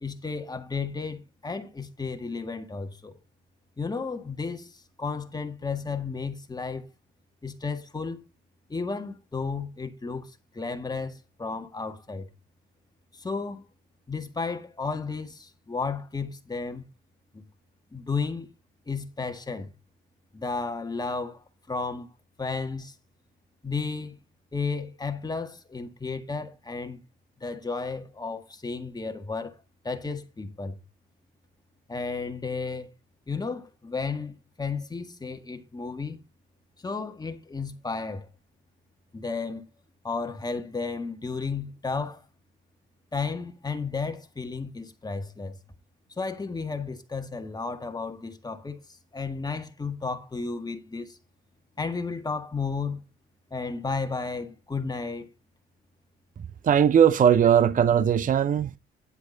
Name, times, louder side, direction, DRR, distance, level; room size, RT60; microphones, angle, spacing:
voice 1, 0.0-3.2 3.8-6.9 7.4-8.2 8.7-12.3 13.1-13.7 14.1-16.8 17.3-17.5 17.9-18.5 18.9-19.7 20.3-22.1 22.4-22.9 23.6-24.2 24.5-27.0 27.4-29.5 29.8-30.8 31.9-32.9 33.3-36.2 36.8-38.3 39.1-39.6 40.0-42.2 43.1-45.6 46.2-51.2 51.8-53.0 53.5-55.3, left 4 dB, 20° left, 1.8 m, -33 dB
voice 2, 56.4-58.8, right 8 dB, 40° right, 0.6 m, -20 dB
10.5 x 8.0 x 3.9 m
cardioid pair, 90°, 20 cm